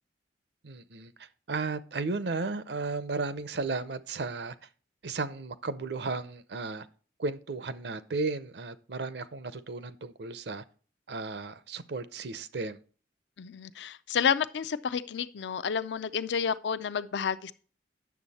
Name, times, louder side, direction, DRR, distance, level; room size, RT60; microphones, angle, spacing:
voice 1, 0.6-4.5 5.0-6.9 7.2-10.6 11.1-12.8, right 3 dB, 70° right, 0.6 m, -34 dB
voice 2, 13.4-17.5, left 7 dB, 90° left, 0.5 m, -30 dB
9.5 x 7.0 x 4.1 m
head